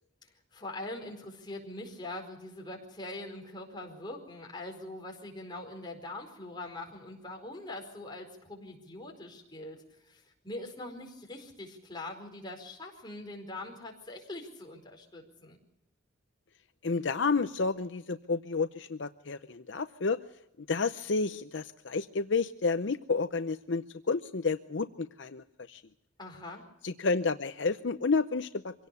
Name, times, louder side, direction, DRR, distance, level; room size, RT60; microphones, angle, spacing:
voice 1, 0.2-15.6 26.2-26.7, left 2 dB, 25° left, 1 dB, 4.7 m, -43 dB
voice 2, 16.8-20.2 20.7-25.8 26.8-28.9, left 4 dB, 65° left, 10 dB, 0.7 m, -30 dB
25.0 x 17.5 x 6.9 m, 0.83 s
head